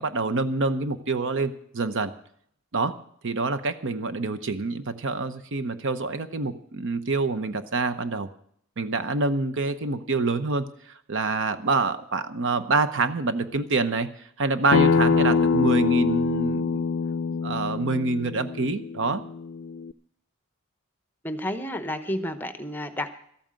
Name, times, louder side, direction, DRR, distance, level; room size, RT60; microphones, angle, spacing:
voice 1, 0.0-2.1 2.7-2.9 3.2-8.3 8.8-14.1 14.4-16.8 17.4-19.2, right 3 dB, 60° right, 12 dB, 0.8 m, -26 dB
Acoustic guitar, 14.7-19.9, left 5 dB, 60° left, 0.4 m, -24 dB
voice 2, 21.2-23.1, left 1 dB, 10° left, 10 dB, 0.9 m, -31 dB
13.5 x 9.0 x 7.6 m, 0.65 s
head